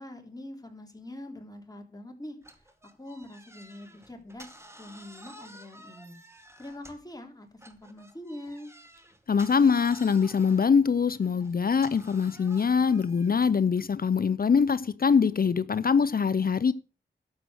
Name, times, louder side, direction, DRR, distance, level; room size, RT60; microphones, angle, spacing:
voice 1, 0.0-2.7 3.0-6.2 6.6-8.7, left 1 dB, 20° left, 3.4 m, -44 dB
sound 1, 2.4-7.2 7.6-13.6, right 1 dB, 15° right, 2.0 m, -51 dB
voice 2, 9.3-16.7, left 6 dB, 50° left, 0.6 m, -23 dB
12.0 x 7.6 x 6.4 m
cardioid pair, 55°, 19 cm